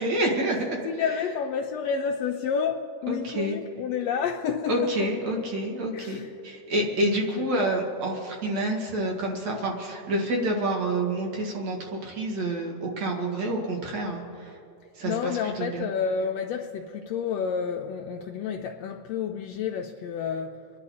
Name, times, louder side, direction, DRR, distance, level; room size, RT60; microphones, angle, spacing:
voice 1, 0.0-0.8 3.1-3.6 4.7-6.2 6.4-14.6 15.0-15.8, right 1 dB, 60° right, 2.9 m, -28 dB
voice 2, 0.8-5.1 5.9-6.3 7.1-7.7 15.0-20.7, left 6 dB, 90° left, 1.5 m, -30 dB
28.5 x 11.0 x 4.2 m
omnidirectional pair, 3.7 m